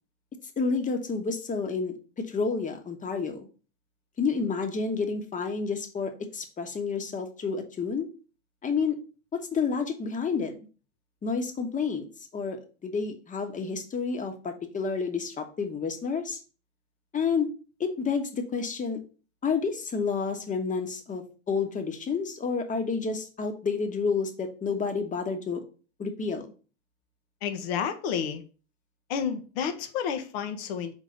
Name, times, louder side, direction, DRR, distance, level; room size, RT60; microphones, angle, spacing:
voice 1, 0.6-3.5 4.2-8.1 8.6-9.0 9.3-10.5 11.2-12.1 12.3-16.4 17.1-17.5 17.8-19.0 19.4-25.6 26.0-26.5, left 5 dB, 20° left, 1.3 m, -30 dB
voice 2, 27.4-28.4 29.1-30.9, left 7 dB, 55° left, 1.1 m, -30 dB
5.5 x 3.7 x 5.1 m
figure-of-eight pair, 85°, 36 cm